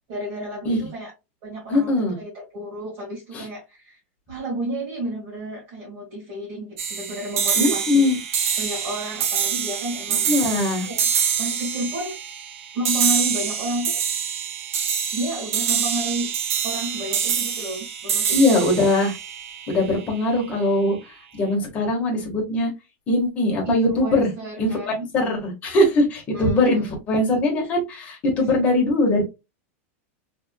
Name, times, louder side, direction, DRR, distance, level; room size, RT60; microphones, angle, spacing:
voice 1, 0.1-1.1 1.4-4.0 4.3-10.3 10.8-11.1 11.4-12.2 12.7-14.0 15.1-16.3 16.6-18.8 23.7-25.1 26.3-26.8, right 1 dB, 40° right, 1.9 m, -31 dB
voice 2, 1.7-2.2 3.3-3.4 7.6-8.2 10.3-10.9 18.3-19.1 19.7-21.0 21.3-22.7 23.1-24.3 24.6-24.7 25.1-29.2, left 1 dB, 20° left, 1.4 m, -21 dB
sound 1, 6.8-20.2, right 8 dB, 80° right, 0.9 m, -26 dB
3.5 x 3.4 x 2.2 m
supercardioid pair, 175°, 7 cm